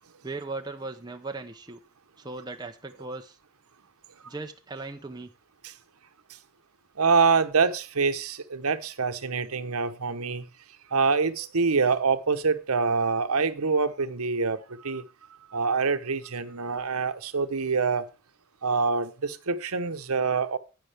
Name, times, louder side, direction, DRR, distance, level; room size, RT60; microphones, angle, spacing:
voice 1, 0.2-1.8 2.2-3.4 4.3-5.3, right 3 dB, 20° right, 0.7 m, -37 dB
voice 2, 7.0-10.4 10.9-14.6 14.8-15.0 15.5-18.0 18.6-20.6, right 5 dB, 90° right, 1.0 m, -25 dB
11.0 x 9.2 x 3.4 m
head